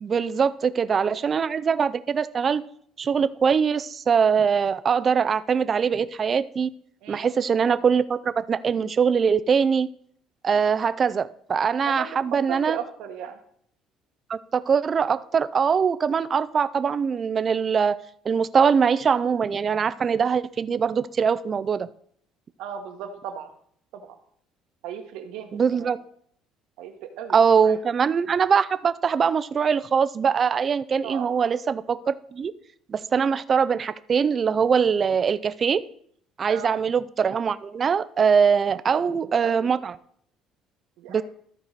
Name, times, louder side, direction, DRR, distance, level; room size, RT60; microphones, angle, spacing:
voice 1, 0.0-2.6 3.0-6.7 7.1-9.9 10.4-12.8 14.3-18.0 18.3-21.9 25.5-26.0 27.3-32.5 32.9-35.8 36.4-39.9 41.1-41.2, right 6 dB, 30° right, 13 dB, 0.4 m, -22 dB
voice 2, 12.5-13.4 22.6-23.5 23.9-24.1 24.8-25.9 26.8-27.8 31.0-31.5 36.5-36.7 38.9-39.7 41.0-41.2, right 8 dB, 75° right, 5 dB, 1.3 m, -36 dB
14.0 x 4.7 x 4.0 m, 0.64 s
cardioid pair, 145°, 0 cm